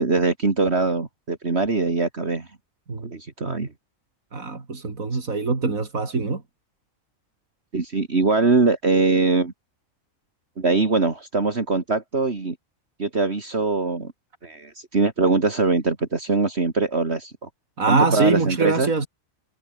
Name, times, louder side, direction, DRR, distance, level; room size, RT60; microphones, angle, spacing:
voice 1, 0.0-2.5 3.0-3.7 7.7-9.5 10.6-12.6 13.0-14.1 14.4-17.5 17.9-18.9, right 3 dB, 50° right, 2.8 m, -22 dB
voice 2, 4.3-6.4 17.8-19.1, right 4 dB, 85° right, 3.5 m, -23 dB
omnidirectional pair, 1.4 m